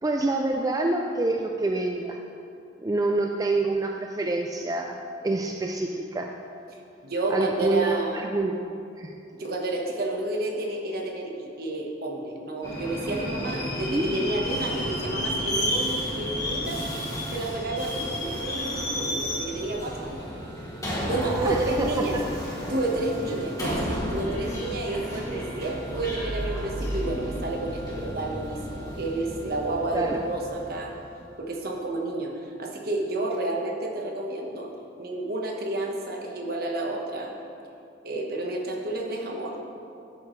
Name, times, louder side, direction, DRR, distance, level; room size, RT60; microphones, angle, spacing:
voice 1, 0.0-2.2 2.8-6.4 7.3-8.6 9.0-9.2 13.9-14.1 21.2-22.2 29.9-30.2, right 2 dB, 20° right, 2 dB, 0.4 m, -27 dB
voice 2, 6.7-8.3 9.3-16.8 17.3-20.2 21.0-22.2 22.7-30.9 31.4-34.7 35.0-37.3 38.0-39.6, right 2 dB, 55° right, 0 dB, 1.3 m, -30 dB
Subway metro underground, 12.6-31.1, equal, 20° left, 2.2 m, -32 dB
sound 1, 25.9-28.8, right 1 dB, 70° right, 1.8 m, -35 dB
13.0 x 8.0 x 3.2 m, 2.6 s
head